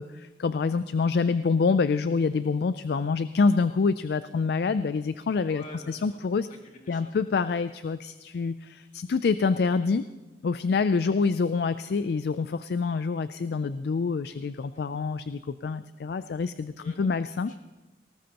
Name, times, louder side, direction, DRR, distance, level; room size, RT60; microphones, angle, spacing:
voice 1, 0.0-6.5 6.9-10.0 10.4-17.5, left 4 dB, 60° left, 13 dB, 0.4 m, -26 dB
voice 2, 5.5-6.2 6.5-7.2 14.7-14.9 16.8-17.2 17.5-17.6, left 2 dB, 45° left, 1 dB, 2.2 m, -47 dB
19.0 x 18.5 x 2.9 m, 1.1 s
head